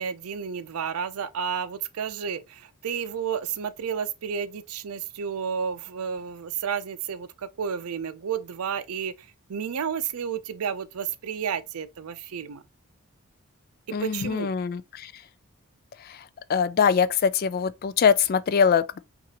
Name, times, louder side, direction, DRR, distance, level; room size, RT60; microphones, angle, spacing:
voice 1, 0.0-12.6 14.0-14.5, right 7 dB, 85° right, 0.5 m, -31 dB
voice 2, 13.9-15.1 16.0-16.2 16.5-19.0, left 6 dB, 45° left, 0.3 m, -23 dB
5.6 x 2.5 x 2.9 m
head